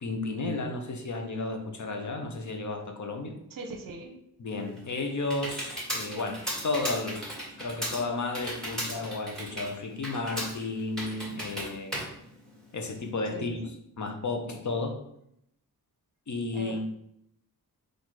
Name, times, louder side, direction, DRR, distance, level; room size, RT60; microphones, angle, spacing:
voice 1, 0.0-3.3 4.4-7.2 7.6-12.0 12.7-13.6 14.0-15.0 16.3-16.8, left 3 dB, 50° left, 4 dB, 0.8 m, -33 dB
voice 2, 3.5-4.2 13.3-13.7 16.5-16.8, right 3 dB, 60° right, 4 dB, 0.8 m, -40 dB
Computer keyboard, 4.5-13.1, equal, ahead, 1.6 m, -37 dB
4.2 x 2.6 x 4.6 m, 0.74 s
cardioid pair, 80°, 38 cm